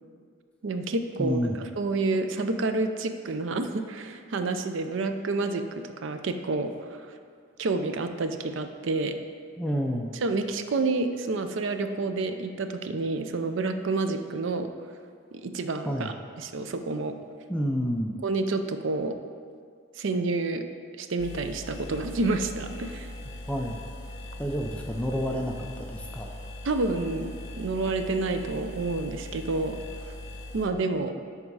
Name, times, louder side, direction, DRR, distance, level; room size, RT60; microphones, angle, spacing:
voice 1, 0.6-7.1 7.6-9.2 10.2-14.7 15.4-17.1 18.2-19.1 20.0-20.6 21.0-23.1 26.6-29.8 30.5-31.1, right 3 dB, 65° right, 8 dB, 0.5 m, -29 dB
voice 2, 1.2-1.6 9.6-10.1 15.9-16.1 17.5-18.2 23.5-23.8 24.4-26.3, equal, 5° left, 1 dB, 0.4 m, -29 dB
sound 1, 21.2-30.6, left 1 dB, 50° left, 1.2 m, -40 dB
10.5 x 3.6 x 4.7 m, 2.1 s
head